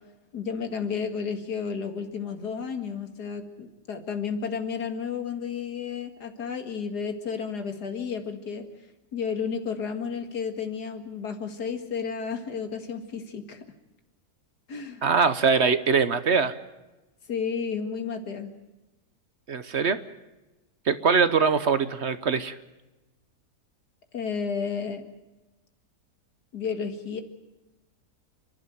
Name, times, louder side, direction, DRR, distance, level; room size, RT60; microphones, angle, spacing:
voice 1, 0.3-8.6 9.1-13.6 14.7-15.0 17.3-18.5 24.1-25.1 26.5-27.2, left 6 dB, 90° left, 7 dB, 2.5 m, -32 dB
voice 2, 15.0-16.5 19.5-20.0 20.9-22.6, right 5 dB, 50° right, 13 dB, 1.1 m, -22 dB
29.5 x 12.0 x 9.2 m, 1.1 s
omnidirectional pair, 1.7 m